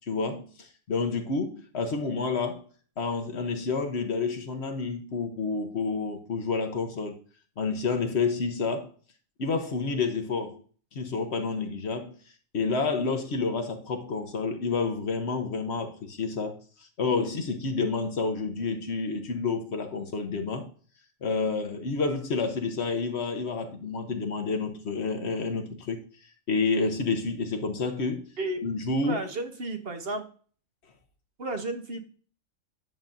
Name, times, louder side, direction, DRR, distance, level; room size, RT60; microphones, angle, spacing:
voice 1, 0.1-2.6 3.0-7.1 7.6-8.9 9.4-10.6 10.9-12.2 12.5-16.6 17.0-20.7 21.2-26.0 26.5-28.2 28.6-29.2, left 4 dB, 55° left, 1.1 m, -29 dB
voice 2, 29.0-30.2 31.4-32.0, right 2 dB, 50° right, 1.0 m, -32 dB
10.5 x 7.1 x 2.6 m
omnidirectional pair, 1.4 m